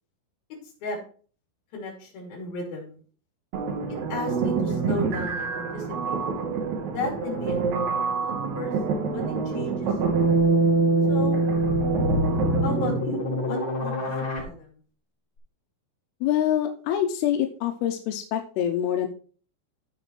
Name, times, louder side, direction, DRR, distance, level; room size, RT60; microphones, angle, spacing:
voice 1, 0.6-1.0 1.7-3.0 3.9-6.2 6.9-8.7 9.1-10.3 11.1-11.4 12.6-14.8, left 2 dB, 55° left, 0 dB, 4.4 m, -35 dB
sound 1, 3.5-13.1, right 4 dB, 75° right, 1.6 m, -25 dB
sound 2, 11.4-14.4, left 2 dB, 35° left, 2.7 m, -28 dB
voice 2, 16.2-19.1, left 10 dB, 85° left, 5 dB, 2.5 m, -25 dB
15.0 x 5.2 x 3.1 m, 0.41 s
omnidirectional pair, 5.1 m